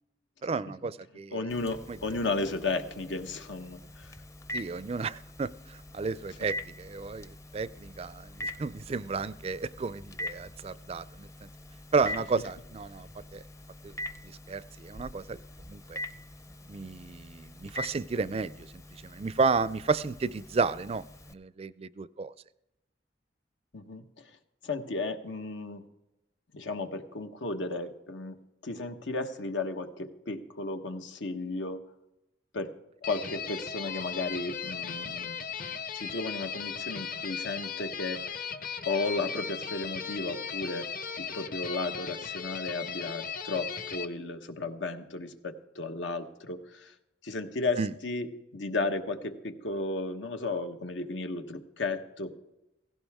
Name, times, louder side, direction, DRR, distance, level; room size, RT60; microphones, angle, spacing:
voice 1, 0.4-1.4 1.9-2.0 4.5-11.5 11.9-13.4 13.8-14.0 14.2-15.4 15.7-16.0 16.7-18.7 19.0-21.0 21.3-22.3 47.8-47.9, right 4 dB, 35° right, 17 dB, 0.4 m, -32 dB
voice 2, 1.3-4.1 23.7-24.3 24.6-25.8 26.5-28.4 28.6-31.8 32.5-32.7 33.0-35.5 35.9-38.2 38.8-40.9 41.2-46.9 47.2-48.3 48.5-52.4, left 3 dB, 90° left, 7 dB, 1.2 m, -34 dB
Telephone, 1.5-21.3, left 1 dB, 15° left, 0.6 m, -44 dB
sound 1, 33.0-44.1, left 6 dB, 50° left, 0.9 m, -37 dB
16.5 x 16.0 x 3.6 m, 0.92 s
head